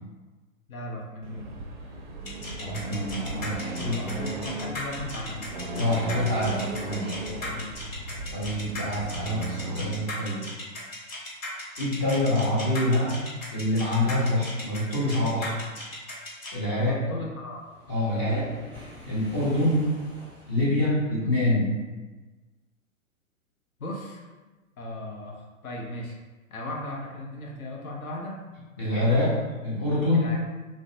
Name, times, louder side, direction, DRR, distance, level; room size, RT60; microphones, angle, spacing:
voice 1, 0.7-1.5 3.8-5.5 7.5-7.7 16.8-17.7 18.1-18.4 19.5-19.7 23.8-24.2 24.8-26.2 26.5-28.4 30.1-30.4, left 1 dB, 85° left, -2 dB, 0.6 m, -37 dB
Accelerating revving vroom, 1.2-9.9, right 1 dB, 40° right, 0.4 m, -36 dB
sound 1, 2.3-16.5, left 1 dB, 65° left, 1.0 m, -37 dB
voice 2, 2.6-4.2 5.8-7.3 8.3-10.6 11.8-13.2 13.5-15.6 16.5-17.0 17.9-18.5 19.1-19.8 20.5-21.7 28.8-30.3, left 1 dB, 20° left, -8 dB, 0.4 m, -26 dB
Waves surf, 17.5-20.9, left 1 dB, 5° left, 0.8 m, -47 dB
2.6 x 2.0 x 2.6 m, 1.2 s
figure-of-eight pair, 110°, 41 cm